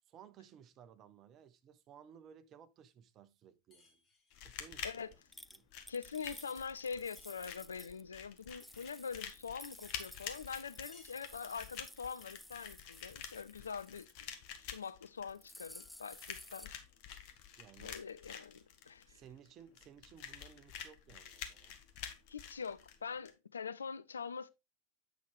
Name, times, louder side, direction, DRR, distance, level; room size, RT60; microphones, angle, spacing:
voice 1, 0.1-4.0 4.4-5.2 5.5-5.7 17.6-18.0 19.1-21.8, right 8 dB, 30° right, 0.7 m, -58 dB
sound 1, 3.7-4.5 7.2-7.9 10.9-11.8, left 3 dB, 20° left, 1.5 m, -65 dB
sound 2, 4.3-23.3, left 8 dB, 45° left, 1.0 m, -49 dB
sound 3, 5.3-8.0 8.4-14.2 14.7-14.9 15.2-16.7, left 1 dB, ahead, 0.3 m, -55 dB
voice 2, 5.9-14.3 14.6-16.8 17.8-19.2 22.3-24.5, left 6 dB, 70° left, 0.4 m, -44 dB
8.1 x 5.6 x 3.1 m
figure-of-eight pair, 90°, 0 cm